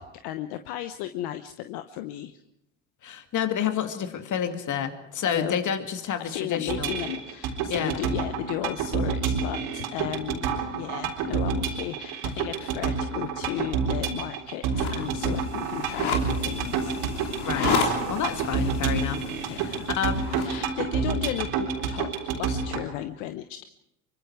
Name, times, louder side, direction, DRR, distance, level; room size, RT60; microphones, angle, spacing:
voice 1, 0.0-2.4 5.2-5.5 6.2-17.0 19.5-19.9 20.4-23.6, left 13 dB, 65° left, 9 dB, 1.1 m, -35 dB
voice 2, 3.0-6.9 7.7-7.9 17.4-20.2, left 8 dB, 45° left, 7 dB, 2.4 m, -29 dB
sound 1, 6.7-22.9, right 6 dB, 65° right, 4.1 m, -29 dB
sound 2, 14.7-20.6, left 6 dB, 85° left, 3.5 m, -32 dB
24.0 x 24.0 x 4.8 m, 0.83 s
hypercardioid pair, 85°, 43 cm